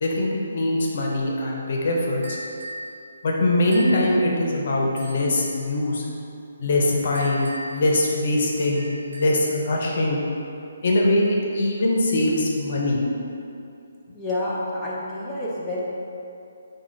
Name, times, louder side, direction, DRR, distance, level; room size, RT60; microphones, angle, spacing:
voice 1, 0.0-2.4 3.2-6.0 6.6-10.2 10.8-13.0, left 1 dB, 55° left, -2 dB, 0.6 m, -22 dB
sound 1, 2.2-2.9 3.7-4.0 5.0-5.6 7.1-7.9 8.8-9.5, right 1 dB, 70° right, 1.1 m, -38 dB
voice 2, 14.1-15.8, left 1 dB, 10° left, -8 dB, 0.5 m, -28 dB
4.8 x 2.2 x 3.1 m, 2.7 s
hypercardioid pair, 150°, 0 cm